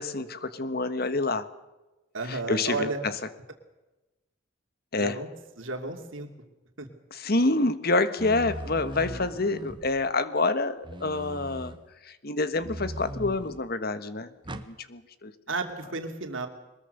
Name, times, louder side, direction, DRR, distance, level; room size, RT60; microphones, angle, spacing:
voice 1, 0.0-1.5 2.2-3.1 4.9-5.2 7.1-11.7 12.0-15.3, left 2 dB, 50° left, 12 dB, 1.4 m, -27 dB
voice 2, 2.1-3.0 5.0-5.3 5.6-6.3 6.8-6.9 15.5-16.5, right 3 dB, 70° right, 5 dB, 2.7 m, -32 dB
sound 1, 8.2-10.1 10.8-11.8 12.6-13.7 14.4-14.7, right 1 dB, 25° right, 1.2 m, -39 dB
22.5 x 21.0 x 6.8 m, 1.1 s
head